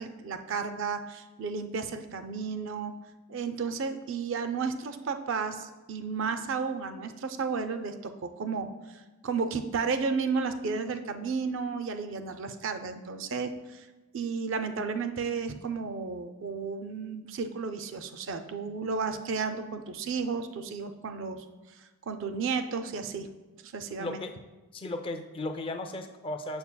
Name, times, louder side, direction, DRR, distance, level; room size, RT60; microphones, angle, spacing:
voice 1, 0.0-2.9 3.3-8.7 9.2-13.9 14.1-21.5 22.1-23.3 23.7-24.2, right 5 dB, 55° right, 8 dB, 0.4 m, -33 dB
voice 2, 24.0-24.3 24.7-26.6, left 2 dB, 25° left, 6 dB, 0.3 m, -35 dB
7.0 x 6.6 x 2.2 m, 1.2 s
head